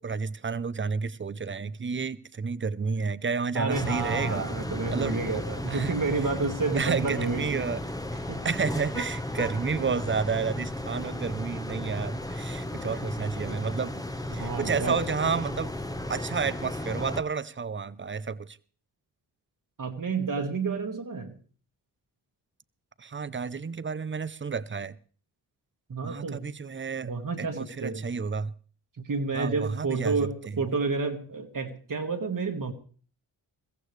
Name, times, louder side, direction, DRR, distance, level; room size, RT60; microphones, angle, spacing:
voice 1, 0.0-4.5 4.9-5.2 5.7-5.9 6.7-7.8 8.4-14.0 14.3-15.7 16.1-18.6 23.0-25.0 26.0-27.1 27.4-28.5 29.3-30.6, right 5 dB, 25° right, 0.7 m, -31 dB
voice 2, 3.5-7.7 8.3-8.4 14.3-15.0 19.8-21.3 25.9-26.5 27.0-28.1 29.0-32.7, right 4 dB, 45° right, 1.7 m, -30 dB
sound 1, 3.7-17.2, left 1 dB, 10° left, 1.1 m, -34 dB
22.0 x 14.5 x 3.3 m
cardioid pair, 45°, 44 cm